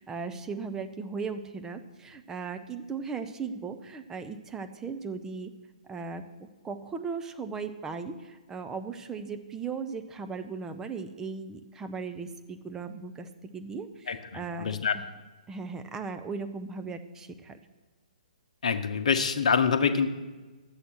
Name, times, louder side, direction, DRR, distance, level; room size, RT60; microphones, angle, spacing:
voice 1, 0.0-5.5 5.9-15.0 15.5-17.6, right 5 dB, 15° right, 8 dB, 0.7 m, -37 dB
voice 2, 14.1-14.9 18.6-20.1, left 6 dB, 65° left, 9 dB, 0.9 m, -26 dB
11.0 x 8.1 x 6.1 m, 1.3 s
figure-of-eight pair, 125°, 4 cm